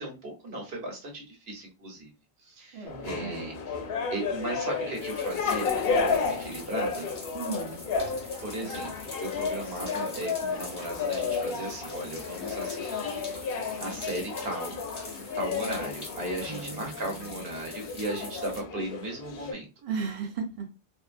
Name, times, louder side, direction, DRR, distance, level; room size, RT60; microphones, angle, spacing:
voice 1, 0.0-2.1 2.4-3.8 4.1-7.1 8.4-13.2 13.5-14.8 15.1-19.7, right 1 dB, 65° right, 1 dB, 1.1 m, -36 dB
voice 2, 2.7-3.4 7.3-7.8 8.6-8.7 16.4-17.4 19.8-20.7, right 5 dB, 40° right, 2 dB, 0.5 m, -36 dB
sound 1, 2.9-19.5, left 5 dB, 65° left, 0.7 m, -32 dB
sound 2, 4.9-18.6, left 2 dB, 30° left, 0.6 m, -44 dB
2.6 x 2.5 x 2.4 m, 0.30 s
omnidirectional pair, 1.1 m